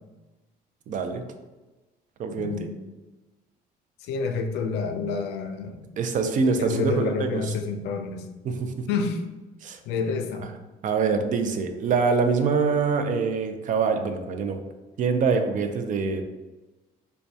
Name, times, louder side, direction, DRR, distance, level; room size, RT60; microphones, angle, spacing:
voice 1, 0.9-1.2 2.2-2.7 6.0-7.4 8.4-8.9 9.6-9.8 10.8-14.6 15.0-16.2, right 5 dB, 50° right, 6 dB, 0.4 m, -24 dB
voice 2, 2.3-2.8 4.0-5.9 6.4-8.3 8.9-9.2 9.9-10.5, left 4 dB, 85° left, 6 dB, 0.4 m, -29 dB
4.3 x 2.2 x 2.7 m, 1.1 s
cardioid pair, 110°, 17 cm